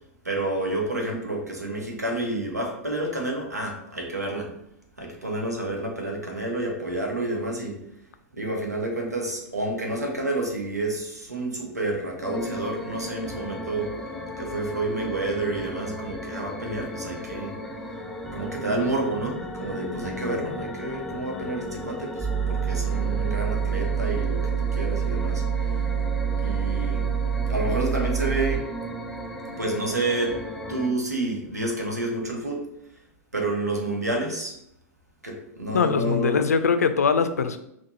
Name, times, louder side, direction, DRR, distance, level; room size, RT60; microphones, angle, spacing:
voice 1, 0.2-4.5 5.0-7.8 8.3-13.9 14.4-17.6 18.3-25.8 26.4-27.0 27.5-28.7 29.6-30.4 30.7-32.7 33.3-34.5 35.2-36.4, right 2 dB, 80° right, 0 dB, 1.1 m, -29 dB
sound 1, 12.2-30.9, equal, 5° left, 0.5 m, -36 dB
sound 2, 22.2-28.6, right 7 dB, 25° right, 1.2 m, -26 dB
voice 2, 35.7-37.6, left 5 dB, 70° left, 9 dB, 0.4 m, -22 dB
5.8 x 2.5 x 2.8 m, 0.77 s
figure-of-eight pair, 95°, 9 cm